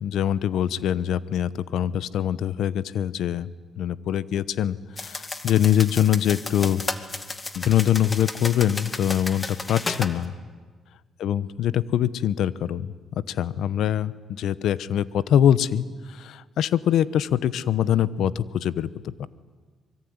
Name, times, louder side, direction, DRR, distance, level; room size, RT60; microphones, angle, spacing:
voice 1, 0.0-3.5 3.8-6.8 7.5-10.3 11.2-12.9 13.3-15.8 16.2-19.3, left 10 dB, 75° left, 17 dB, 0.9 m, -23 dB
sound 1, 5.0-10.1, left 3 dB, 25° left, 2.1 m, -33 dB
25.0 x 23.0 x 9.7 m, 1.5 s
cardioid pair, 90°, 0 cm